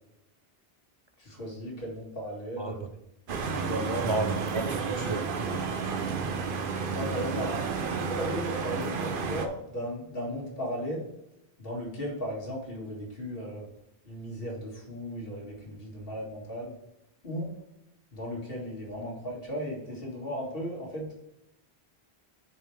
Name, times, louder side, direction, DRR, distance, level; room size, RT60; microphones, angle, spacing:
voice 1, 1.2-2.8 3.4-4.2 6.9-7.6 7.9-11.0 11.6-13.7 14.1-16.7 17.2-17.5 18.1-21.2, equal, 65° left, -3 dB, 2.3 m, -36 dB
sound 1, 3.3-9.5, right 5 dB, 60° right, 0.9 m, -31 dB
voice 2, 4.0-5.9, right 3 dB, 45° right, 5 dB, 0.4 m, -33 dB
6.2 x 5.2 x 4.6 m, 0.87 s
omnidirectional pair, 1.0 m